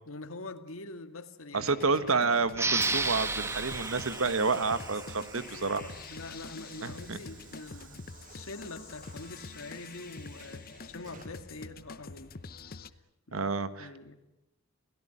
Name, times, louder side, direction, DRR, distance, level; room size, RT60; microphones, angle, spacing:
voice 1, 0.1-1.8 6.1-12.4 13.3-14.1, left 2 dB, 85° left, 9 dB, 2.0 m, -45 dB
voice 2, 1.5-5.9 6.8-7.2 13.3-13.9, right 4 dB, 85° right, 12 dB, 1.5 m, -29 dB
sound 1, 1.6-12.9, left 4 dB, 45° left, 0.9 m, -47 dB
Hiss / Sliding door, 2.2-12.9, right 6 dB, 40° right, 2.2 m, -51 dB
sound 2, 2.5-5.8, right 3 dB, 15° right, 1.2 m, -33 dB
28.0 x 17.5 x 9.9 m, 0.94 s
head